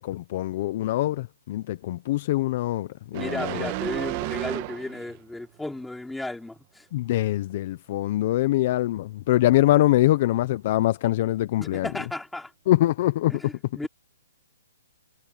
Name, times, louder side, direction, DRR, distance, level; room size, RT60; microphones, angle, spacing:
voice 1, 0.0-3.7 6.9-11.9 12.7-13.4, left 15 dB, 35° left, 0.7 m, -23 dB
voice 2, 3.1-6.9 11.6-12.5 13.3-13.9, left 2 dB, ahead, 4.4 m, -34 dB
sound 1, 3.1-5.2 5.6-5.8, right 21 dB, 25° right, 1.7 m, -32 dB
hypercardioid pair, 165°, 0 cm